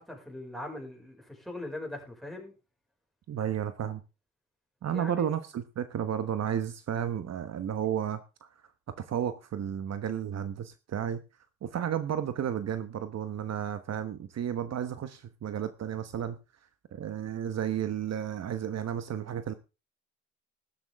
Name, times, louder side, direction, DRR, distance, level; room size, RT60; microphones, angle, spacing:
voice 1, 0.0-2.5 4.9-5.3, left 1 dB, ahead, 5.7 m, -40 dB
voice 2, 3.3-4.0 4.8-8.5 9.0-11.2 11.6-16.4 16.9-19.5, right 9 dB, 60° right, 1.2 m, -32 dB
13.0 x 12.0 x 3.6 m
cardioid pair, 90°, 30 cm